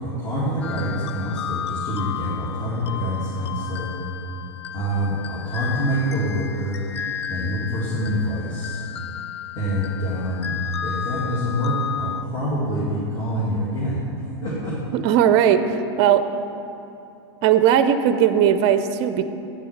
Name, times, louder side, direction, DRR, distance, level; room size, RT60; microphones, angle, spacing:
voice 1, 0.0-3.9 4.7-6.8 7.3-8.8 9.5-10.5 10.8-14.0 14.4-14.8, equal, 30° left, -7 dB, 2.3 m, -26 dB
sound 1, 0.6-12.2, left 9 dB, 80° left, 0.4 m, -33 dB
voice 2, 14.9-16.2 17.4-19.2, right 9 dB, 45° right, 11 dB, 0.5 m, -18 dB
8.4 x 7.0 x 5.9 m, 2.8 s
hypercardioid pair, 100°, 14 cm